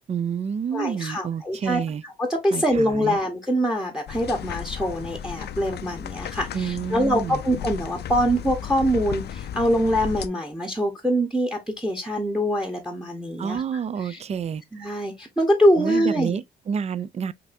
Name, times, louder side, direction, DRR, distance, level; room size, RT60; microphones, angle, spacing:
voice 1, 0.1-2.0 2.5-3.2 6.5-7.4 13.4-14.6 15.7-17.3, right 7 dB, 35° right, 0.3 m, -29 dB
voice 2, 0.7-1.8 2.2-13.6 14.1-14.2 14.7-16.3, equal, 5° right, 0.9 m, -24 dB
sound 1, 4.1-10.3, left 9 dB, 55° left, 0.5 m, -34 dB
5.4 x 2.7 x 2.5 m
cardioid pair, 90°, 20 cm